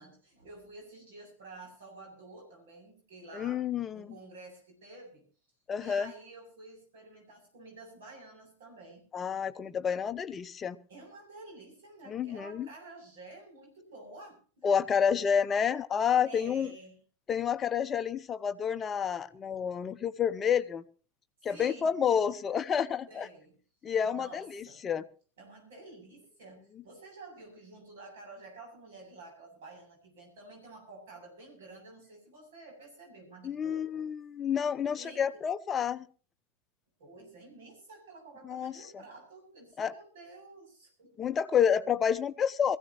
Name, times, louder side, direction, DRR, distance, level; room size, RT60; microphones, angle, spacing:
voice 1, 0.0-3.6 3.9-5.2 5.8-9.1 10.9-14.7 16.2-16.9 21.4-22.0 23.1-23.6 24.0-24.8 25.4-34.1 35.0-35.4 37.0-41.4, right 2 dB, 55° right, 3 dB, 7.7 m, -50 dB
voice 2, 3.3-4.1 5.7-6.1 9.1-10.8 12.1-12.7 14.6-16.7 17.3-20.8 21.4-23.3 23.8-25.0 33.4-36.1 38.4-38.7 39.8-39.9 41.2-42.8, left 7 dB, 20° left, 12 dB, 0.8 m, -29 dB
22.5 x 15.5 x 3.0 m, 0.39 s
figure-of-eight pair, 90°, 0 cm